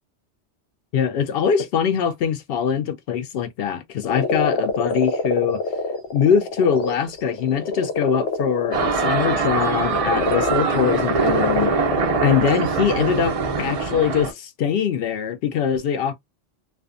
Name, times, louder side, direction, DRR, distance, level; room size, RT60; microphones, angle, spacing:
voice 1, 0.9-5.6 6.1-16.1, left 7 dB, 65° left, 0.7 m, -22 dB
sound 1, 4.0-12.5 13.2-14.2, left 3 dB, 85° left, 1.0 m, -26 dB
sound 2, 8.7-14.3, right 5 dB, 60° right, 0.3 m, -23 dB
2.5 x 2.2 x 2.4 m
omnidirectional pair, 1.2 m